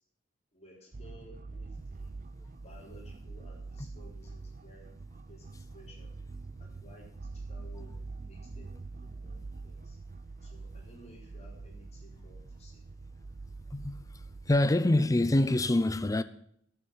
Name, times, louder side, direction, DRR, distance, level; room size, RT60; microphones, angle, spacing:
voice 1, 0.5-2.1 2.6-4.9 5.3-6.1 6.6-10.0 10.4-12.8, equal, 35° left, 3.9 m, -55 dB
sound 1, 0.9-14.6, right 3 dB, 45° right, 0.6 m, -45 dB
voice 2, 13.7-14.0 14.5-16.2, left 1 dB, 20° left, 0.5 m, -25 dB
12.0 x 7.2 x 8.7 m
head